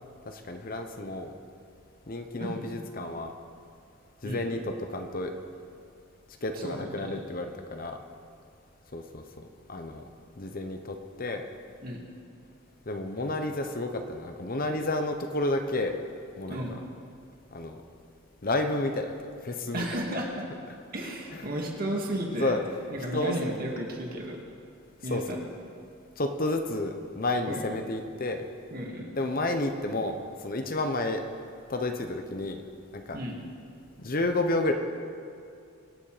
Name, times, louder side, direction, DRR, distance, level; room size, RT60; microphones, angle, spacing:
voice 1, 0.3-1.3 2.1-3.3 4.2-5.3 6.4-8.0 8.9-10.0 10.4-11.4 12.9-16.0 16.4-16.6 17.5-17.8 18.4-19.1 19.4-19.9 21.3-21.4 22.4-22.6 23.1-23.5 25.1-25.2 26.2-28.4 29.1-30.2 30.4-31.2 31.7-32.6 32.9-33.2 34.0-34.7, left 2 dB, 45° left, 5 dB, 0.9 m, -31 dB
voice 2, 6.6-7.2 11.8-12.0 16.5-16.8 19.7-20.4 20.9-22.6 22.9-24.4 25.0-25.4 27.5-27.6 28.7-29.1 33.1-33.4, equal, 45° right, -1 dB, 2.3 m, -33 dB
25.0 x 8.5 x 5.0 m, 2.4 s
head